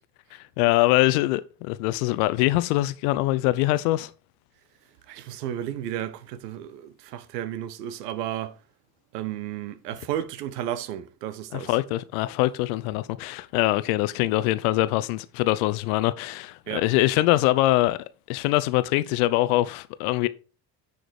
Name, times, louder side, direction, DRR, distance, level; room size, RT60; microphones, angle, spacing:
voice 1, 0.3-4.1 11.5-18.0 18.3-20.3, left 17 dB, 60° left, 0.7 m, -23 dB
voice 2, 5.1-8.6 9.1-11.8 16.7-16.8, right 11 dB, 70° right, 1.0 m, -33 dB
9.9 x 5.0 x 4.6 m
figure-of-eight pair, 55°, 50 cm